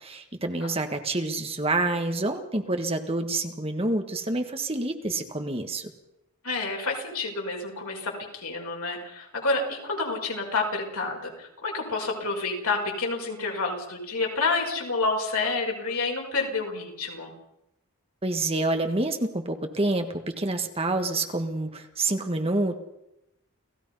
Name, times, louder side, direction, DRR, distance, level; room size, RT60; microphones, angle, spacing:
voice 1, 0.0-5.9 18.2-22.8, right 2 dB, 25° right, 6 dB, 1.6 m, -28 dB
voice 2, 6.4-17.3, left 3 dB, 85° left, 1 dB, 5.7 m, -29 dB
30.0 x 16.5 x 5.6 m, 0.86 s
head